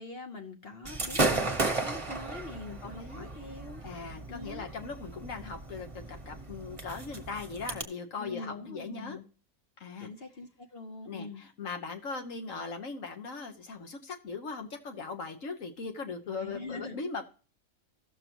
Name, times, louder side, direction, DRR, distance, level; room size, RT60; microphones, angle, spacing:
voice 1, 0.0-3.8 4.3-4.6 8.2-9.2 10.0-11.4 16.4-17.0, left 3 dB, 50° left, 4 dB, 1.1 m, -43 dB
Gunshot gunfire / Fireworks, 0.8-7.8, right 2 dB, 25° right, 1.2 m, -34 dB
voice 2, 2.8-3.3 3.8-9.2 9.8-10.1 11.1-17.3, left 4 dB, 70° left, 4 dB, 1.5 m, -39 dB
16.5 x 6.7 x 3.0 m, 0.37 s
omnidirectional pair, 1.4 m